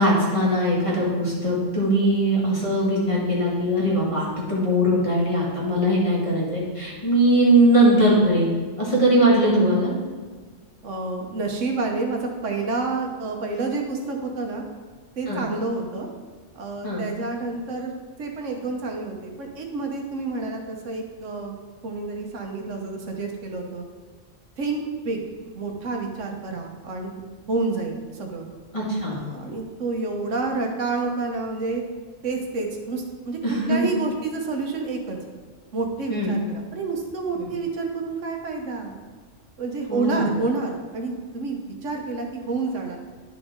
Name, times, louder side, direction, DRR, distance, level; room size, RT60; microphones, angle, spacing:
voice 1, 0.0-9.9 15.3-15.4 16.8-17.1 28.7-29.2 33.4-33.8 36.1-36.3 37.3-37.5 39.9-40.3, right 1 dB, 25° left, -6 dB, 2.1 m, -20 dB
voice 2, 10.8-14.6 15.2-16.1 16.5-17.9 18.2-21.5 21.8-23.8 24.6-25.2 25.5-27.2 27.5-28.5 29.1-31.8 32.2-33.4 33.6-35.2 35.7-39.0 39.6-43.0, right 3 dB, 80° right, 2 dB, 1.3 m, -29 dB
11.0 x 5.1 x 3.7 m, 1.5 s
omnidirectional pair, 1.3 m